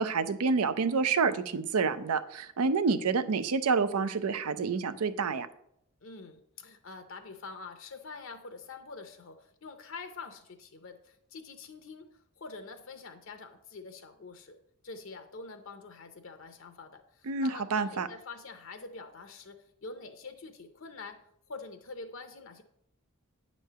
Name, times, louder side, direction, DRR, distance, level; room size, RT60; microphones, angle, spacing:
voice 1, 0.0-5.5 17.3-18.1, right 5 dB, 85° right, 12 dB, 0.5 m, -28 dB
voice 2, 6.0-14.6 14.8-21.2 21.5-22.6, left 4 dB, 60° left, 6 dB, 0.6 m, -46 dB
9.3 x 3.1 x 6.6 m, 0.74 s
head